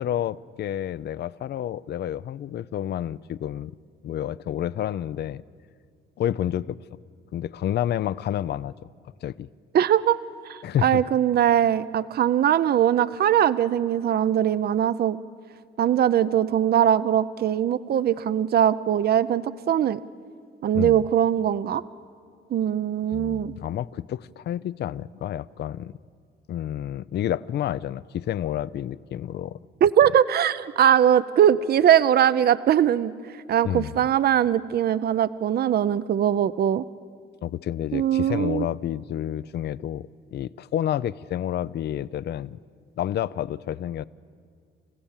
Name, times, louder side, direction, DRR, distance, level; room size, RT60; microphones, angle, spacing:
voice 1, 0.0-3.7 4.0-5.4 6.2-6.8 7.3-8.7 9.2-9.5 10.6-11.0 20.7-21.1 23.1-25.9 26.5-29.6 33.6-34.1 37.4-42.6 43.0-44.0, left 11 dB, 60° left, 0.5 m, -29 dB
voice 2, 9.7-10.2 10.5-15.2 15.8-20.0 20.6-21.8 22.5-23.5 29.8-33.1 33.5-36.9 37.9-38.7, right 10 dB, 50° right, 0.6 m, -21 dB
28.5 x 15.5 x 7.3 m
cardioid pair, 90°, 20 cm